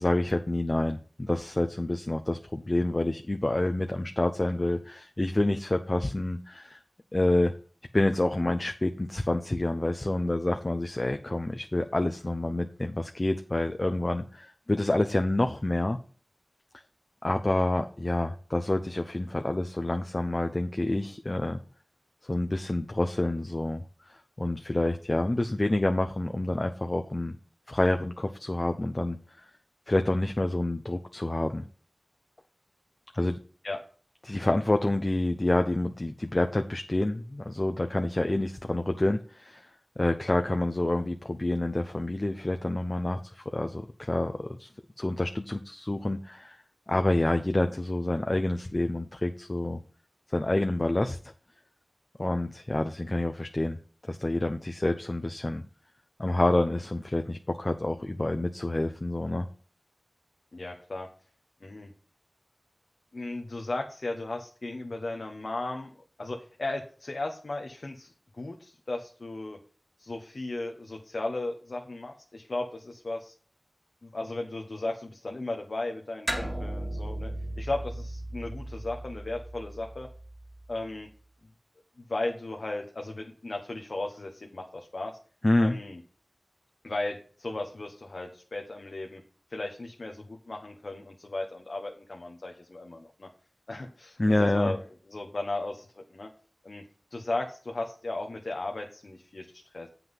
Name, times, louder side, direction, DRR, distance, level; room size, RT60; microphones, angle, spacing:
voice 1, 0.0-6.8 7.1-7.5 7.9-16.0 17.2-21.6 22.2-23.8 24.1-27.3 27.7-29.5 29.9-31.6 33.2-33.4 34.2-39.7 40.0-44.7 45.0-46.6 46.9-49.8 50.3-51.3 52.2-53.8 54.0-55.6 56.2-59.5 85.4-85.8 94.2-94.7, left 1 dB, 45° left, 6 dB, 0.8 m, -28 dB
voice 2, 60.5-61.1 61.6-61.9 63.1-69.6 70.0-73.3 74.0-80.1 80.7-81.1 82.1-85.2 85.6-86.0 86.8-89.2 89.5-93.3 93.7-94.8 95.1-96.3 96.6-96.8 97.1-99.9, left 2 dB, 75° left, 2 dB, 1.2 m, -36 dB
sound 1, 76.3-81.0, right 1 dB, 30° right, 2.3 m, -37 dB
7.9 x 5.9 x 5.3 m, 0.41 s
wide cardioid pair, 45°, 0 cm